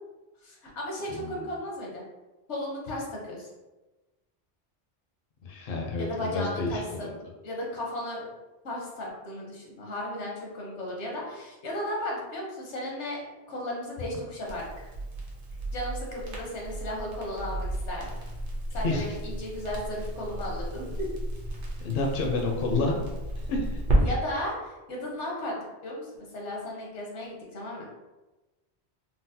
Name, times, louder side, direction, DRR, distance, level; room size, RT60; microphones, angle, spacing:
voice 1, 0.4-2.0 2.5-3.5 6.0-7.1 7.4-8.3 8.6-13.2 13.5-14.9 15.7-18.2 18.7-21.1 24.0-27.9, left 1 dB, 85° left, -2 dB, 1.2 m, -35 dB
voice 2, 1.1-1.4 5.4-7.1 18.8-19.0 21.8-23.0 23.4-23.8, left 3 dB, 60° left, 0 dB, 0.7 m, -29 dB
Crackle, 14.4-24.0, right 1 dB, 50° right, 0.8 m, -33 dB
3.9 x 2.0 x 2.7 m, 1.1 s
omnidirectional pair, 1.1 m